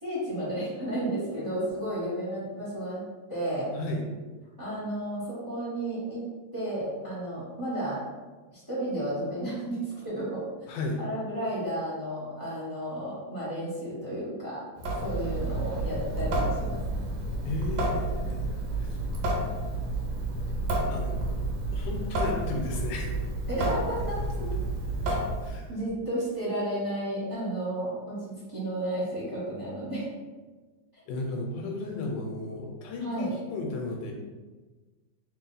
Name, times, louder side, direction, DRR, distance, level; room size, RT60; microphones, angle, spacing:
voice 1, 0.0-3.0 3.3-3.7 4.6-6.2 6.5-8.0 8.5-9.8 10.0-10.7 11.0-14.6 15.0-16.8 23.5-24.5 25.0-25.2 25.7-30.1 33.0-33.3, right 1 dB, 15° right, -8 dB, 1.1 m, -32 dB
voice 2, 3.7-4.1 10.7-11.0 17.4-19.0 20.9-21.3 21.7-23.2 25.4-25.6 31.1-34.1, left 2 dB, 80° left, 1 dB, 1.2 m, -34 dB
Water tap faucet / Sink (filling or washing) / Drip, 14.8-25.7, right 2 dB, 80° right, 1.4 m, -30 dB
3.3 x 2.6 x 3.9 m, 1.3 s
omnidirectional pair, 2.0 m